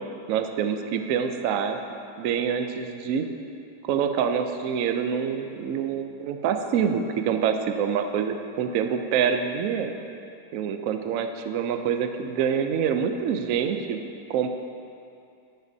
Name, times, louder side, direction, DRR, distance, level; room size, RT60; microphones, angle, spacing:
voice 1, 0.3-1.8 2.2-3.3 3.8-9.9 10.5-14.0 14.3-14.5, right 7 dB, 90° right, 7 dB, 0.7 m, -26 dB
12.0 x 9.3 x 2.7 m, 2.5 s
omnidirectional pair, 2.0 m